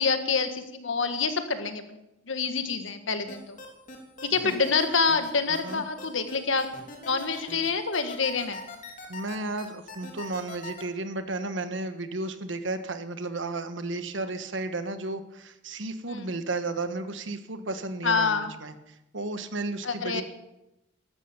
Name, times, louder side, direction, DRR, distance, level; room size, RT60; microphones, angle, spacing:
voice 1, 0.0-2.0 2.3-3.6 4.3-6.7 7.1-8.6 16.1-16.3 18.0-18.5 19.8-20.2, left 5 dB, 85° left, 8 dB, 1.7 m, -27 dB
sound 1, 3.3-10.8, left 3 dB, 45° left, 3.0 m, -41 dB
voice 2, 9.1-18.7 19.1-20.2, right 2 dB, 75° right, 10 dB, 1.3 m, -33 dB
14.0 x 12.0 x 7.1 m, 0.91 s
head